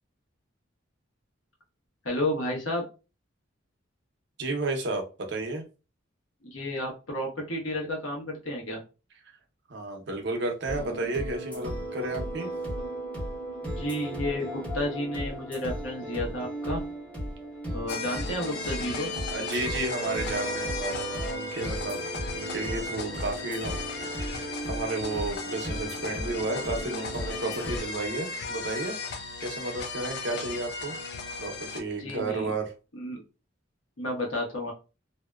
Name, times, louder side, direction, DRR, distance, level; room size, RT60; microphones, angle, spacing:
voice 1, 2.0-2.8 6.4-8.8 13.6-16.8 17.7-19.1 32.0-32.5 33.0-33.2 34.0-34.7, left 1 dB, 90° left, 0 dB, 1.0 m, -31 dB
voice 2, 4.4-5.6 9.7-12.5 19.3-22.0 22.3-28.9 29.4-31.0 31.4-32.7, right 2 dB, 60° right, 3 dB, 0.6 m, -32 dB
sound 1, 10.7-27.8, right 1 dB, 5° left, 1.1 m, -36 dB
sound 2, 17.9-31.8, left 4 dB, 55° left, 0.4 m, -36 dB
2.6 x 2.1 x 2.2 m, 0.31 s
head